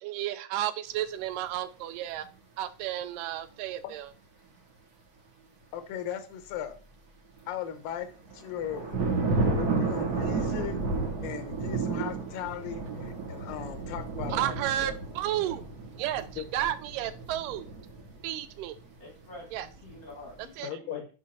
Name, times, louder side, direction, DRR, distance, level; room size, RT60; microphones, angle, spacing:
voice 1, 0.0-2.3 2.6-4.1 14.3-15.6 16.0-17.7 18.2-18.8 19.5-19.7 20.6-20.8, right 12 dB, 80° right, 12 dB, 2.1 m, -32 dB
voice 2, 5.7-6.8 7.5-8.1 8.3-9.1 9.5-10.8 11.2-15.0 16.4-16.5 20.6-21.1, left 9 dB, 85° left, 8 dB, 2.7 m, -37 dB
sound 1, 8.0-8.1 8.3-18.8 19.2-20.4, right 3 dB, 65° right, 0.9 m, -32 dB
voice 3, 19.0-21.0, left 2 dB, 45° left, 0 dB, 1.1 m, -47 dB
6.5 x 5.6 x 4.1 m, 0.35 s
omnidirectional pair, 3.9 m